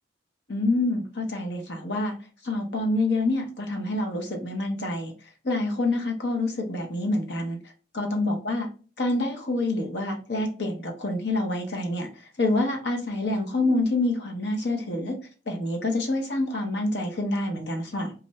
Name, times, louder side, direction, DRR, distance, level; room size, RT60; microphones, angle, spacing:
voice 1, 0.5-2.1 2.4-5.1 5.4-7.6 7.9-8.7 9.0-12.1 12.4-15.1 15.5-18.1, left 2 dB, 65° left, 3 dB, 0.8 m, -27 dB
2.5 x 2.2 x 4.0 m, 0.37 s
head